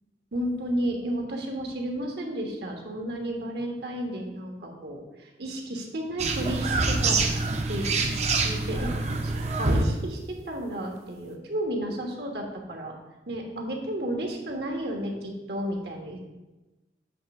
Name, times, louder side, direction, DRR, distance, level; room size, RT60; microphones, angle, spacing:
voice 1, 0.3-7.2 7.7-8.0 8.4-8.9 9.2-10.2 10.4-12.9 13.3-16.3, right 1 dB, 65° right, 2 dB, 1.3 m, -32 dB
sound 1, 6.2-9.8, right 3 dB, 40° right, 0.7 m, -26 dB
8.4 x 3.4 x 6.0 m, 1.1 s
head